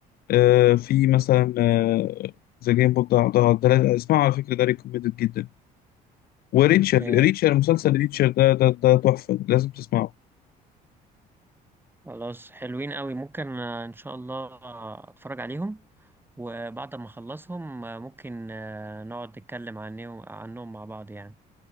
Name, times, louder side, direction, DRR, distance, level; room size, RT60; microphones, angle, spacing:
voice 1, 0.3-2.3 2.6-5.5 6.5-10.1, left 15 dB, 65° left, 0.5 m, -20 dB
voice 2, 6.7-7.2 12.0-15.8 16.4-21.3, right 2 dB, 10° right, 7.7 m, -36 dB
cardioid pair, 110°, 17 cm